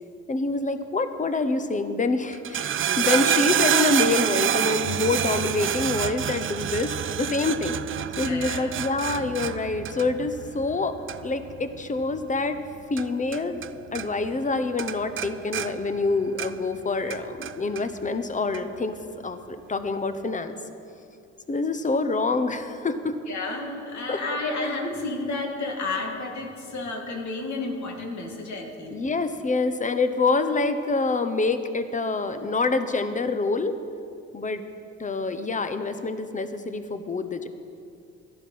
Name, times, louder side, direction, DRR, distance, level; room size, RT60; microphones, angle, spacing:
voice 1, 0.3-7.8 8.2-11.0 11.2-12.6 12.9-13.6 13.9-19.0 19.2-20.5 21.5-23.1 24.1-24.2 28.9-33.8 34.3-34.6 35.0-37.5, left 3 dB, 25° left, 10 dB, 0.9 m, -26 dB
sound 1, 2.3-13.7 13.9-14.5 14.8-16.7 17.1-17.8 18.5-18.6, right 10 dB, 45° right, 0.4 m, -27 dB
voice 2, 8.2-8.7 23.3-29.0, left 2 dB, 70° left, 2 dB, 2.2 m, -31 dB
14.0 x 11.0 x 5.6 m, 2.5 s
cardioid pair, 90°, 30 cm